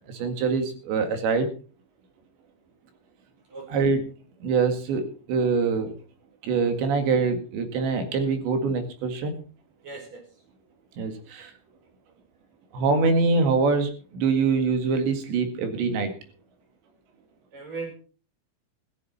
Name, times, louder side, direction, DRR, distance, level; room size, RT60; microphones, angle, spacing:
voice 1, 0.1-1.5 3.7-4.1 4.4-5.9 6.4-9.3 11.0-11.5 12.7-16.1, right 4 dB, 65° right, 7 dB, 4.0 m, -24 dB
voice 2, 3.5-3.9 9.8-10.2 17.5-17.9, right 4 dB, 35° right, 3 dB, 5.9 m, -37 dB
15.0 x 14.0 x 4.3 m, 0.38 s
omnidirectional pair, 5.7 m